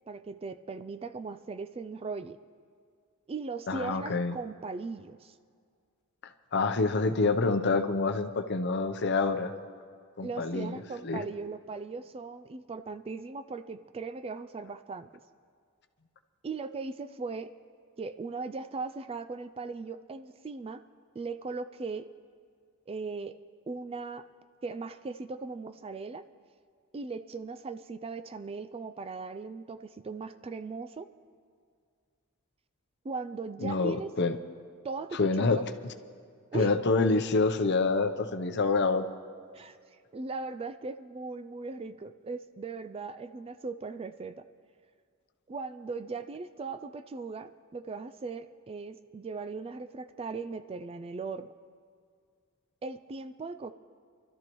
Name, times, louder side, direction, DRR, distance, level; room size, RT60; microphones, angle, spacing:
voice 1, 0.1-2.4 3.3-5.3 10.2-15.1 16.4-17.5 18.0-20.8 21.1-22.1 22.9-23.4 23.7-24.3 24.6-26.3 26.9-31.1 33.0-34.1 34.8-35.6 36.5-36.7 39.5-39.8 40.1-44.5 45.5-51.5 52.8-53.7, right 4 dB, 25° right, 11 dB, 0.3 m, -38 dB
voice 2, 3.7-4.3 6.5-9.5 10.2-10.8 11.0-11.2 33.6-34.3 35.1-35.6 36.5-39.0, left 3 dB, 50° left, 7 dB, 0.7 m, -27 dB
26.5 x 12.5 x 3.1 m, 2.1 s
head